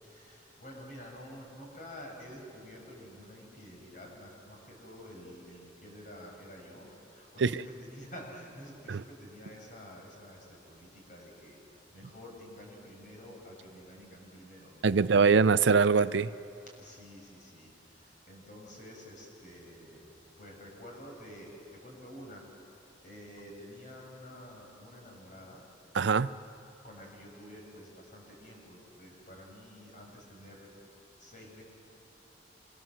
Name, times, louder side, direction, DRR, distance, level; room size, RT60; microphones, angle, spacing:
voice 1, 0.0-11.6 11.9-15.2 16.8-20.0 20.4-22.4 23.0-25.6 26.8-30.9 31.2-31.6, equal, 45° left, -1 dB, 6.7 m, -49 dB
voice 2, 14.8-16.3 25.9-26.3, right 5 dB, 75° right, 14 dB, 0.5 m, -23 dB
26.0 x 25.0 x 7.7 m, 2.9 s
head